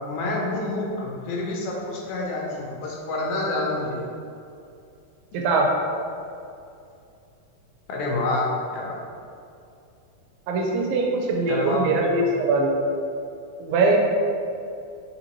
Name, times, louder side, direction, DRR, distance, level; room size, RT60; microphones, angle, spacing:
voice 1, 0.1-4.1 7.9-9.0 11.5-11.8 12.1-12.2, left 2 dB, 80° left, -3 dB, 1.9 m, -27 dB
voice 2, 5.3-5.8 10.5-12.8 13.6-14.0, right 3 dB, 80° right, 0 dB, 1.8 m, -22 dB
4.2 x 3.9 x 2.9 m, 2.5 s
omnidirectional pair, 3.5 m